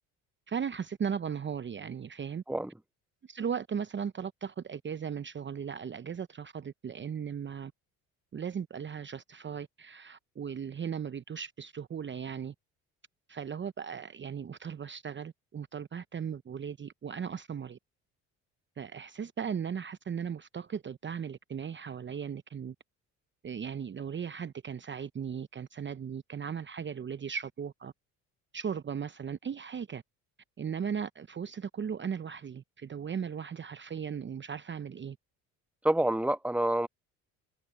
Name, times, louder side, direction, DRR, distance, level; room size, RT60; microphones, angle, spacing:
voice 1, 0.5-2.4 3.2-7.7 8.3-12.5 13.3-17.8 18.8-22.7 23.4-27.9 28.5-30.0 30.6-35.2, right 7 dB, 30° right, 0.8 m, -37 dB
voice 2, 35.8-36.9, right 1 dB, 5° right, 1.3 m, -27 dB
hypercardioid pair, 60°, 37 cm